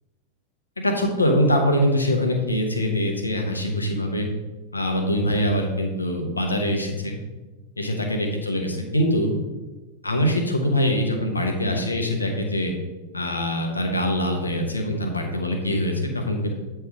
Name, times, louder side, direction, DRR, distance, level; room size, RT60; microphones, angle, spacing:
voice 1, 0.8-4.3 4.7-7.2 7.8-9.3 10.0-12.7 13.1-16.5, equal, 80° left, 3 dB, 1.0 m, -23 dB
8.2 x 3.4 x 4.8 m, 1.2 s
figure-of-eight pair, 90°, 0 cm